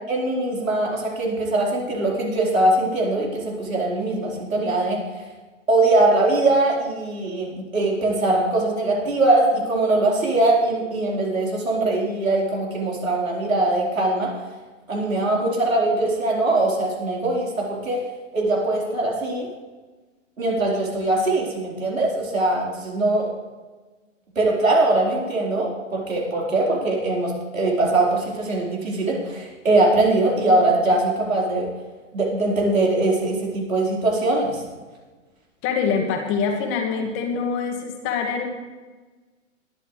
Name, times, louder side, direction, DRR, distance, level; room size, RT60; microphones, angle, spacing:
voice 1, 0.1-5.2 5.7-14.3 14.9-18.0 18.3-19.5 20.4-23.3 24.4-31.7 32.1-34.6, right 2 dB, 85° right, -3 dB, 4.5 m, -21 dB
voice 2, 35.6-38.5, left 5 dB, 30° left, 2 dB, 2.1 m, -24 dB
21.0 x 8.7 x 3.3 m, 1.3 s
figure-of-eight pair, 115°, 39 cm